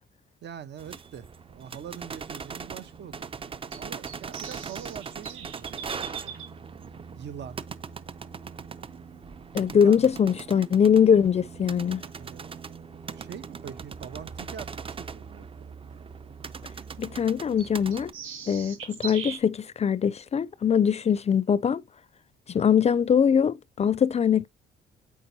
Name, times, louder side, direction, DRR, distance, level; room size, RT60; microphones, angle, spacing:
voice 1, 0.4-6.3 7.2-7.6 9.7-10.1 12.2-12.5 12.9-15.7, right 8 dB, 60° right, 0.9 m, -43 dB
sound 1, 0.8-18.1, right 5 dB, 25° right, 0.5 m, -40 dB
sound 2, 1.6-19.4, right 8 dB, 90° right, 1.8 m, -46 dB
voice 2, 9.5-12.0 17.0-18.1 18.5-21.8 22.5-24.5, left 7 dB, 35° left, 0.4 m, -22 dB
8.6 x 4.7 x 2.7 m
cardioid pair, 90°, 20 cm